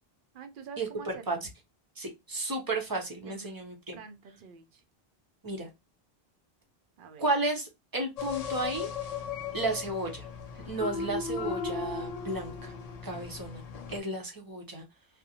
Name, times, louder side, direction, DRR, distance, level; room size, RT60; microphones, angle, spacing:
voice 1, 0.3-1.4 3.2-3.6 3.9-4.8 7.0-7.3, right 5 dB, 60° right, 0.7 m, -47 dB
voice 2, 2.0-4.0 5.4-5.7 7.2-8.9 9.5-10.3 10.6-12.7 13.0-13.6 13.9-14.8, right 2 dB, 25° right, 0.6 m, -33 dB
sound 1, 8.2-14.0, left 5 dB, 50° left, 0.5 m, -37 dB
2.4 x 2.1 x 2.7 m
omnidirectional pair, 1.0 m